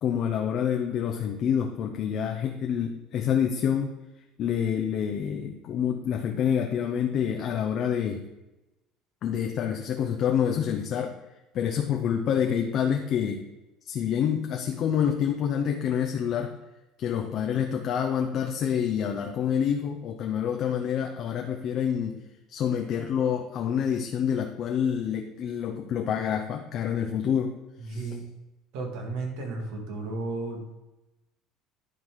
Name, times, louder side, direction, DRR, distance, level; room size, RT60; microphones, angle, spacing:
voice 1, 0.0-3.9 4.4-8.2 9.2-11.1 11.5-13.4 13.9-16.5 17.0-22.2 22.5-27.5 27.8-28.1, left 8 dB, 50° left, 3 dB, 0.7 m, -27 dB
voice 2, 27.8-28.2 28.7-30.7, right 3 dB, 75° right, 2 dB, 2.0 m, -33 dB
11.0 x 3.9 x 4.8 m, 0.99 s
cardioid pair, 120°, 0 cm